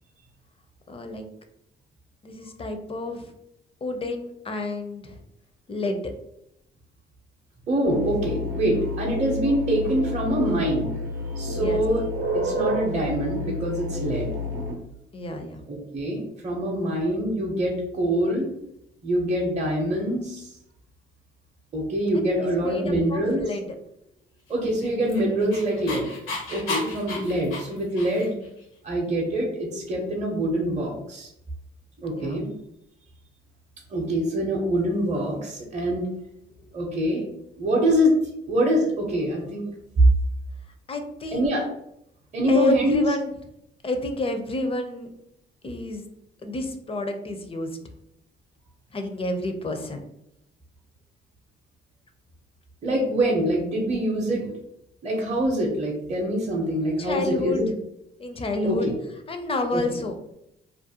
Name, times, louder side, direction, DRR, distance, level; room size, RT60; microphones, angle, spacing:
voice 1, 0.9-1.2 2.2-3.3 3.8-5.2 5.7-6.1 11.5-11.8 15.1-15.6 22.1-23.7 32.1-32.5 36.6-36.7 40.9-41.5 42.5-43.3 43.8-45.1 45.6-46.0 46.4-47.8 48.9-50.0 56.5-57.6 58.2-58.9 59.3-60.2, left 2 dB, 30° left, 6 dB, 0.4 m, -29 dB
voice 2, 7.7-10.9 11.4-12.0 12.3-14.3 15.7-18.5 19.0-20.6 21.7-23.4 24.5-26.1 26.5-28.3 28.8-31.3 32.0-32.5 33.9-36.1 36.7-37.2 37.6-38.1 38.5-39.7 40.0-40.1 41.3-41.6 42.3-43.0 52.8-54.5 55.0-57.7 58.6-58.9 59.7-60.0, right 1 dB, 35° right, -2 dB, 0.6 m, -24 dB
sound 1, 7.8-14.7, left 1 dB, 80° right, 0.6 m, -30 dB
Dog, 24.6-28.5, left 3 dB, 85° left, 0.7 m, -34 dB
2.4 x 2.1 x 2.7 m, 0.79 s
cardioid pair, 90°, 20 cm